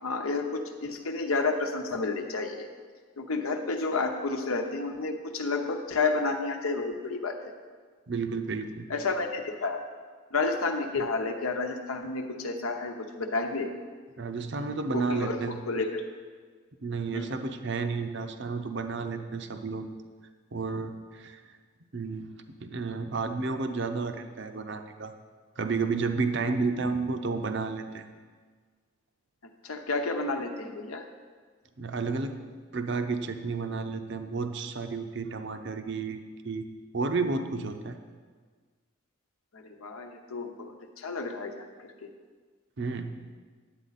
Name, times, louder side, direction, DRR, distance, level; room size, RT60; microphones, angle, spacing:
voice 1, 0.0-2.7 3.2-7.4 8.9-9.8 10.3-13.7 14.9-15.4 15.7-16.0 17.1-17.3 29.6-31.0 39.5-41.6 42.0-42.1, left 3 dB, 90° left, 4 dB, 0.9 m, -30 dB
voice 2, 8.1-8.9 14.2-15.6 16.8-19.9 20.5-21.4 21.9-25.1 25.6-28.1 31.8-32.4 32.7-36.7 36.9-38.0 42.8-43.1, right 4 dB, 55° right, 8 dB, 0.7 m, -31 dB
9.9 x 8.3 x 4.1 m, 1.5 s
head